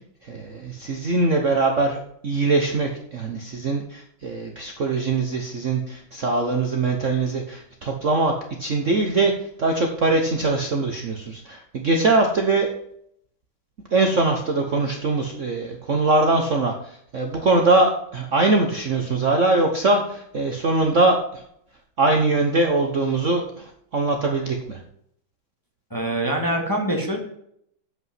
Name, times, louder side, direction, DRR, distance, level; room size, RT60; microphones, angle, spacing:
voice 1, 0.2-8.3 8.6-9.3 9.6-12.7 13.9-21.4 22.0-24.8, right 3 dB, 45° right, 2 dB, 1.1 m, -22 dB
voice 2, 25.9-27.2, right 1 dB, 10° left, 0 dB, 1.6 m, -24 dB
7.9 x 5.8 x 7.5 m, 0.71 s
omnidirectional pair, 2.2 m